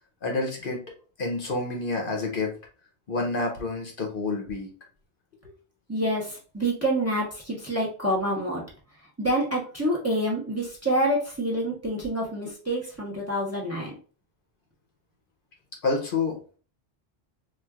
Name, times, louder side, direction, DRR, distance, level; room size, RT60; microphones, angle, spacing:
voice 1, 0.2-0.8 1.2-2.5 3.1-4.7 15.8-16.6, left 3 dB, 55° left, 1 dB, 0.9 m, -28 dB
voice 2, 5.9-8.6 9.2-13.9, right 1 dB, 15° right, -4 dB, 0.8 m, -27 dB
4.2 x 2.4 x 2.3 m, 0.38 s
omnidirectional pair, 1.1 m